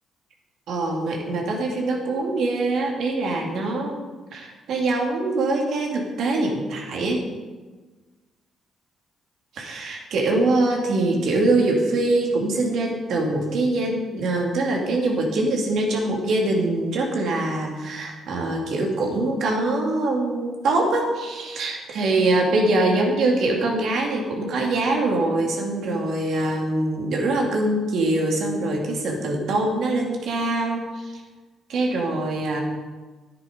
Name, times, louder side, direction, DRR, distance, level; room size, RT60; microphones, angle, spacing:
voice 1, 0.7-4.1 4.3-7.2 9.6-31.1 31.7-32.6, right 2 dB, 70° right, 0 dB, 2.5 m, -23 dB
9.8 x 9.8 x 5.1 m, 1.3 s
cardioid pair, 90°, 0 cm